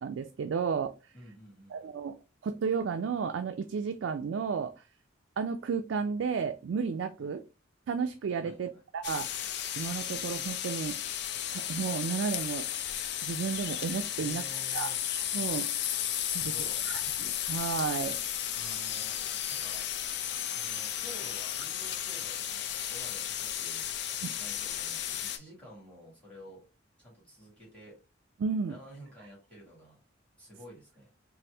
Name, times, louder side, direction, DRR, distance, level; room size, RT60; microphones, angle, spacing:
voice 1, 0.0-0.9 1.7-2.1 2.4-4.7 5.4-7.4 7.9-9.3 9.8-11.0 11.5-12.7 13.2-14.4 14.7-14.9 15.3-15.7 16.3-16.5 16.9-18.2 24.2-24.3 28.4-28.8, right 6 dB, 75° right, 6 dB, 0.3 m, -32 dB
voice 2, 1.1-1.9 7.2-7.3 8.4-8.8 14.2-15.0 16.3-16.8 18.5-19.2 19.5-19.9 20.5-23.9 24.4-26.6 27.0-28.0 28.6-30.0 30.4-31.1, equal, 5° left, -6 dB, 1.7 m, -51 dB
sound 1, 9.0-25.4, left 10 dB, 60° left, 0.4 m, -34 dB
4.1 x 2.0 x 3.3 m, 0.30 s
head